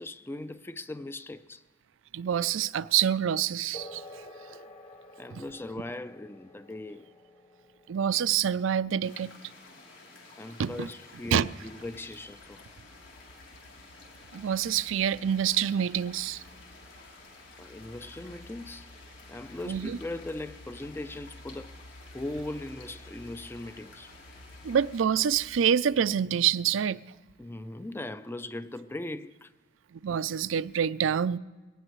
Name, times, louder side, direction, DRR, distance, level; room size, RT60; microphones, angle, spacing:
voice 1, 0.0-1.6 5.2-7.1 10.4-12.6 17.6-18.9 19.3-21.8 22.1-24.1 27.4-29.5, left 2 dB, 10° left, 0.4 m, -39 dB
voice 2, 2.1-4.3 5.3-5.4 7.9-9.3 10.6-10.9 11.3-11.5 14.3-16.4 19.7-20.0 24.6-27.0 29.9-31.4, right 8 dB, 90° right, 0.4 m, -27 dB
sound 1, 3.7-11.7, left 1 dB, 35° left, 1.1 m, -51 dB
sound 2, 9.0-25.0, left 3 dB, 90° left, 3.4 m, -52 dB
sound 3, 11.8-25.6, left 1 dB, 60° left, 0.8 m, -53 dB
22.0 x 18.5 x 3.1 m
head